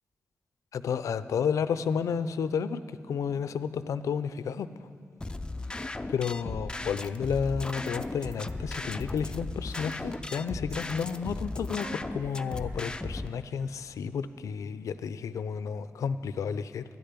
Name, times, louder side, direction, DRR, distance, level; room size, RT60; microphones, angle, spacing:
voice 1, 0.7-4.7 6.1-16.8, left 6 dB, 90° left, 14 dB, 0.4 m, -31 dB
sound 1, 5.2-13.3, left 2 dB, 15° left, 0.4 m, -36 dB
sound 2, 7.4-9.1 9.7-10.1 10.7-11.1 11.6-13.3, right 2 dB, 80° right, 1.9 m, -52 dB
12.0 x 6.8 x 9.6 m, 2.4 s
cardioid pair, 80°, 5 cm